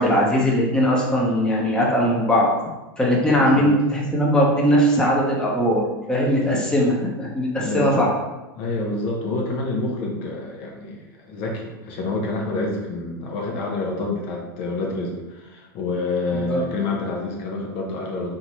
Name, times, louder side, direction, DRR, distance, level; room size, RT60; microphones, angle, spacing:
voice 1, 0.0-2.5 3.0-5.8 6.1-8.1 16.3-16.6, equal, 5° left, -4 dB, 1.0 m, -20 dB
voice 2, 3.4-3.7 6.4-6.5 7.6-8.1 8.5-18.3, left 2 dB, 50° left, -1 dB, 1.0 m, -28 dB
3.9 x 3.9 x 3.1 m, 1.0 s
hypercardioid pair, 110°, 12 cm